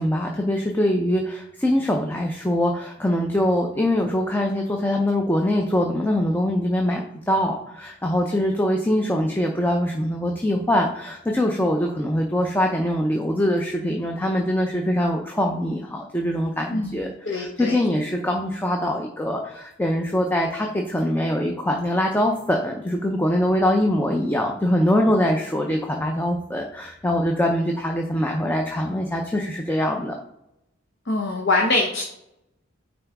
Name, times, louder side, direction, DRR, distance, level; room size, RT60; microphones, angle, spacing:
voice 1, 0.0-30.1, left 1 dB, 10° left, 1 dB, 0.5 m, -23 dB
voice 2, 16.7-17.8 31.1-32.0, left 2 dB, 60° left, 0 dB, 0.9 m, -24 dB
9.3 x 3.9 x 3.5 m, 0.84 s
head